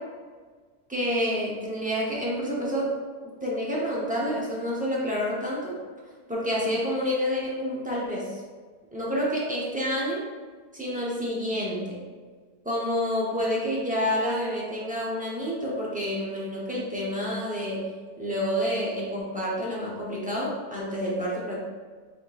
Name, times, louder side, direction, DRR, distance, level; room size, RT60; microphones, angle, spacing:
voice 1, 0.9-2.9 3.4-5.8 6.3-8.4 8.9-10.2 10.7-12.0 12.6-17.9 18.2-21.6, equal, 10° right, -6 dB, 0.5 m, -28 dB
5.0 x 3.5 x 2.4 m, 1.5 s
omnidirectional pair, 1.6 m